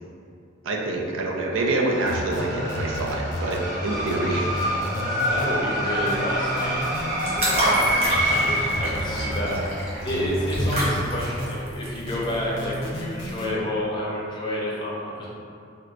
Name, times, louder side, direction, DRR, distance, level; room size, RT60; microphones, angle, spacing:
voice 1, 0.6-4.5, right 2 dB, 85° right, 0 dB, 0.4 m, -26 dB
sound 1, 1.5-11.5, equal, 55° right, 1.2 m, -28 dB
sound 2, 2.1-3.6 4.1-5.5 6.1-7.5 8.1-9.6 10.1-11.5 12.1-13.5, left 1 dB, 75° left, 0.5 m, -33 dB
voice 2, 5.3-6.8 7.5-15.3, equal, 25° left, -5 dB, 0.5 m, -29 dB
sound 3, 6.7-13.5, equal, 30° right, 0.7 m, -28 dB
4.2 x 2.0 x 2.5 m, 2.4 s
head